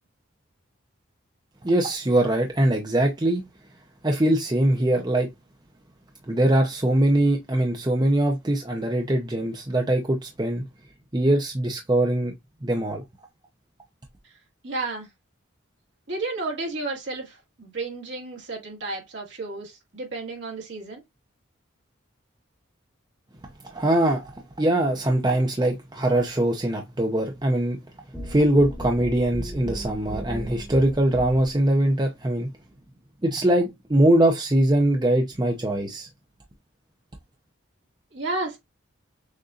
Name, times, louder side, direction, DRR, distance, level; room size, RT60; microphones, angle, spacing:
voice 1, 1.6-3.4 4.0-5.3 6.3-10.6 11.1-12.3 12.6-13.0 23.7-27.8 28.2-32.5 33.2-36.1, right 1 dB, 20° right, 0.6 m, -22 dB
voice 2, 14.6-15.1 16.1-21.0 38.1-38.6, right 3 dB, 65° right, 2.0 m, -32 dB
sound 1, 28.1-31.7, right 1 dB, ahead, 1.1 m, -35 dB
6.5 x 2.6 x 2.4 m
head